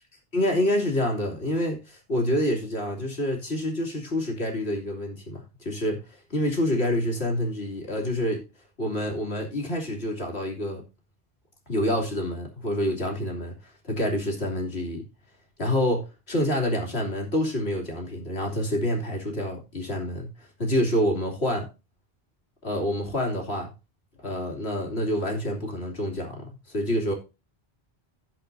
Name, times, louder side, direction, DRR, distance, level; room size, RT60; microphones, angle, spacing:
voice 1, 0.3-8.4 8.8-10.8 11.7-15.0 15.6-21.7 22.6-23.7 24.2-27.1, left 1 dB, 85° left, 3.2 m, -27 dB
17.0 x 5.8 x 2.7 m
omnidirectional pair, 1.0 m